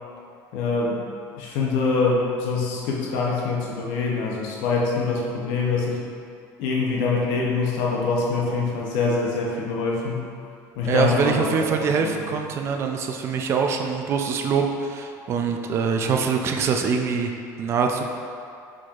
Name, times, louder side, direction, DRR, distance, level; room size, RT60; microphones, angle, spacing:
voice 1, 0.5-1.1 1.4-6.0 6.6-10.3 10.8-12.2, left 4 dB, 90° left, -3 dB, 0.7 m, -24 dB
voice 2, 10.8-17.3 17.6-18.0, right 6 dB, 35° right, 4 dB, 0.3 m, -24 dB
4.6 x 4.2 x 2.4 m, 2.5 s
cardioid pair, 150°, 7 cm